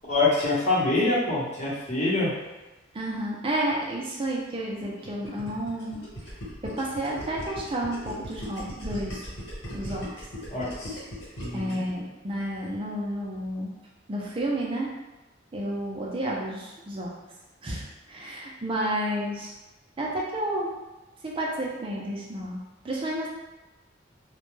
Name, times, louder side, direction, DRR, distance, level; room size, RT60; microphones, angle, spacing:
voice 1, 0.1-2.4 10.5-11.0 11.4-11.9, left 2 dB, 40° left, -8 dB, 0.8 m, -25 dB
voice 2, 2.9-6.0 6.6-9.2 9.7-10.3 11.5-13.7 14.1-14.9 15.5-17.1 17.6-19.6 20.0-20.8 21.2-23.3, right 1 dB, 30° right, -3 dB, 0.4 m, -31 dB
Gurgling, 4.8-11.9, equal, 90° left, 1.2 m, -38 dB
2.2 x 2.1 x 3.1 m, 1.1 s
head